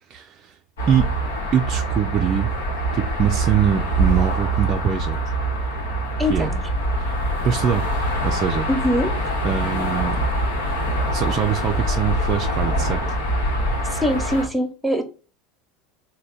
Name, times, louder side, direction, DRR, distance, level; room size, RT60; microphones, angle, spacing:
voice 1, 0.1-0.6 0.9-1.1 1.5-2.5 2.9-5.2 6.3-6.5 7.0-7.2 7.4-7.9 8.2-8.7 9.4-10.2 11.1-13.0, right 8 dB, 45° right, 0.3 m, -23 dB
sound 1, 0.8-14.5, right 1 dB, 80° left, 1.0 m, -24 dB
voice 2, 6.2-6.6 8.7-9.1 13.8-15.0, left 1 dB, 5° right, 0.8 m, -22 dB
3.3 x 2.1 x 3.9 m
hypercardioid pair, 80°, 0 cm